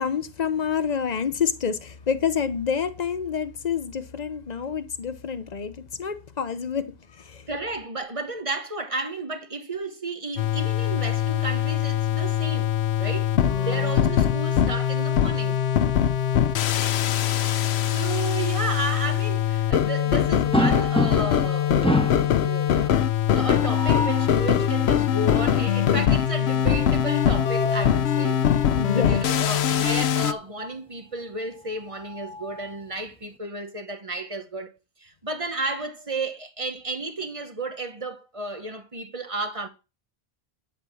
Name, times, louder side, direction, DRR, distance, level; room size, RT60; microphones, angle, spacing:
voice 1, 0.0-7.4 13.3-13.9 28.8-29.2, left 7 dB, 45° left, 0.9 m, -28 dB
voice 2, 7.5-13.3 13.6-15.7 17.4-23.0 23.3-34.7 35.0-39.7, right 2 dB, 35° right, 1.2 m, -33 dB
sound 1, 10.4-30.3, left 9 dB, 85° left, 0.9 m, -22 dB
sound 2, 20.5-21.5 21.8-22.3 23.5-24.3 26.9-28.0 29.4-29.6 29.9-30.0 31.6-32.8, left 1 dB, 5° left, 0.9 m, -27 dB
11.0 x 4.3 x 7.1 m
omnidirectional pair, 1.0 m